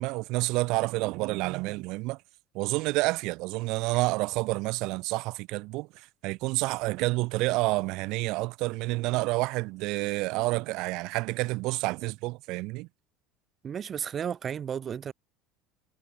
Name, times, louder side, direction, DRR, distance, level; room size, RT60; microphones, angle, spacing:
voice 1, 0.0-2.2 2.5-12.9, right 22 dB, 55° right, 6.6 m, -29 dB
voice 2, 13.6-15.1, right 8 dB, 35° right, 6.9 m, -33 dB
figure-of-eight pair, 70°, 0 cm